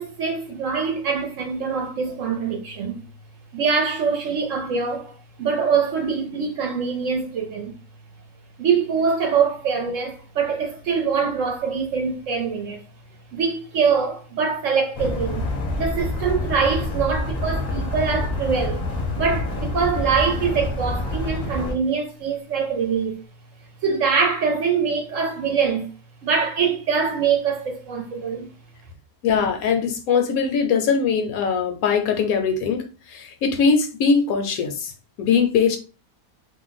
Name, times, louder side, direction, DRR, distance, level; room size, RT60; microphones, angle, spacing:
voice 1, 0.0-3.0 3.5-5.1 5.4-7.7 8.6-12.8 13.3-15.5 15.8-18.9 19.1-23.2 23.8-25.9 26.2-28.5, right 5 dB, 65° right, 0.9 m, -23 dB
Car Strong Wind Noise, 14.9-21.7, left 1 dB, 40° left, 0.6 m, -27 dB
voice 2, 29.2-34.9 35.2-35.8, left 5 dB, 70° left, 1.0 m, -21 dB
2.6 x 2.1 x 3.9 m
omnidirectional pair, 1.7 m